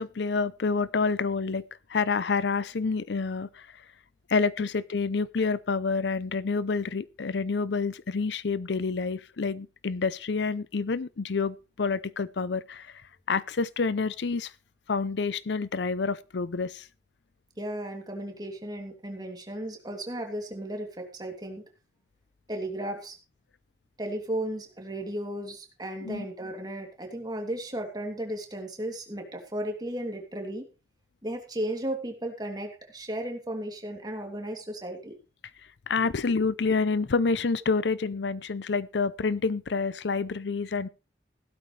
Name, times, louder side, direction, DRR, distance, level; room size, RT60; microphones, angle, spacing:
voice 1, 0.0-1.6 1.9-3.7 4.3-13.0 13.3-14.5 14.9-16.9 26.0-26.2 35.9-40.9, left 4 dB, 75° left, 0.6 m, -28 dB
voice 2, 17.6-21.6 22.5-23.2 24.0-30.7 31.2-35.1, right 1 dB, 20° right, 3.0 m, -35 dB
16.0 x 12.5 x 3.3 m
head